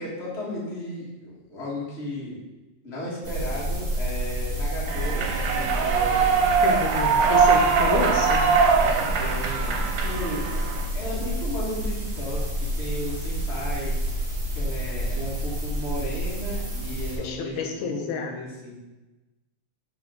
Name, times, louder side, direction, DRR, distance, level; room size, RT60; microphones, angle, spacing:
voice 1, 0.0-2.5 2.8-6.3 8.7-10.6 10.9-18.7, left 1 dB, 30° left, -6 dB, 1.4 m, -35 dB
sound 1, 3.2-17.2, right 1 dB, 65° right, 0.6 m, -29 dB
Human voice / Clapping / Cheering, 4.9-10.9, right 5 dB, 80° right, 2.1 m, -22 dB
voice 2, 6.6-8.5 17.2-18.3, left 5 dB, 90° left, 4 dB, 2.1 m, -29 dB
6.2 x 4.6 x 3.8 m, 1.1 s
omnidirectional pair, 3.4 m